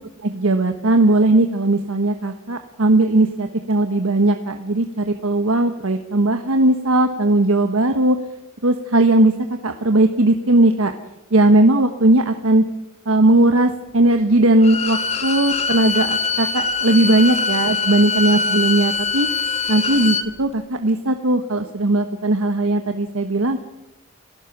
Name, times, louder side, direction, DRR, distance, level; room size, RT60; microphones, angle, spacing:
voice 1, 0.2-8.2 8.6-9.3 9.6-10.9 11.3-12.6 13.1-19.3 19.7-23.6, right 2 dB, 85° right, 6 dB, 1.3 m, -18 dB
Bowed string instrument, 14.6-20.3, left 4 dB, 30° left, 1.5 m, -23 dB
30.0 x 16.5 x 6.1 m, 0.96 s
head